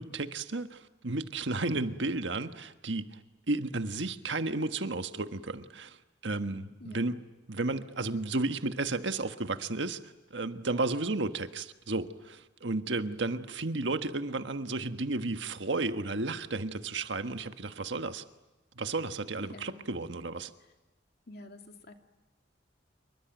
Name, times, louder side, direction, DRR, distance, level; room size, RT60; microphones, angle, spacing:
voice 1, 0.0-3.2 3.5-6.0 6.2-7.1 7.5-18.2 18.7-20.5, right 2 dB, 75° right, 8 dB, 1.5 m, -33 dB
voice 2, 1.6-2.0 6.8-7.2 19.4-19.9 20.6-20.7 21.3-21.9, left 2 dB, 60° left, 4 dB, 2.6 m, -50 dB
27.0 x 24.0 x 9.2 m, 1.1 s
head